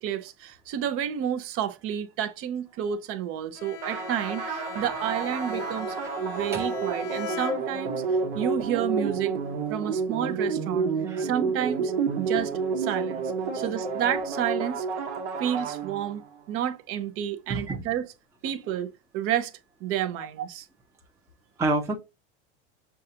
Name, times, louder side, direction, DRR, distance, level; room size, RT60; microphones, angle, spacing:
voice 1, 0.0-6.0 6.2-8.0 8.3-9.3 9.7-10.9 11.2-14.9 15.4-18.1 18.4-19.5 19.8-20.6, right 10 dB, 40° right, 0.7 m, -30 dB
Bowed string instrument, 3.6-8.2, left 10 dB, 70° left, 1.0 m, -40 dB
sound 1, 3.8-16.4, right 5 dB, 75° right, 1.2 m, -30 dB
voice 2, 17.5-17.8 20.2-20.3 21.6-21.9, right 2 dB, 10° right, 0.7 m, -28 dB
6.4 x 2.4 x 2.7 m
supercardioid pair, 125°, 34 cm